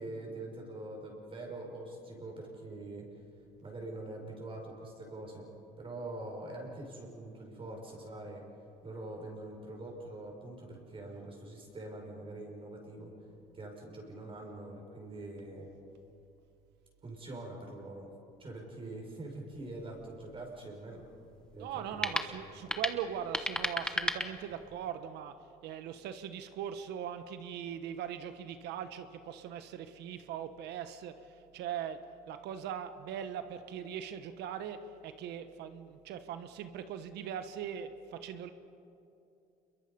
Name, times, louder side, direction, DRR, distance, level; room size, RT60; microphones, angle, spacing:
voice 1, 0.0-3.1 3.6-5.5 5.8-8.4 8.8-13.1 13.5-15.7 17.0-18.1 18.4-21.0 21.5-22.4, right 2 dB, 30° right, 0 dB, 5.6 m, -44 dB
sound 1, 19.5-24.9, left 1 dB, 5° left, 1.2 m, -37 dB
voice 2, 21.6-25.3 25.6-32.0 32.3-38.5, right 9 dB, 85° right, 10 dB, 1.2 m, -40 dB
28.0 x 22.5 x 5.4 m, 2.7 s
cardioid pair, 110°, 17 cm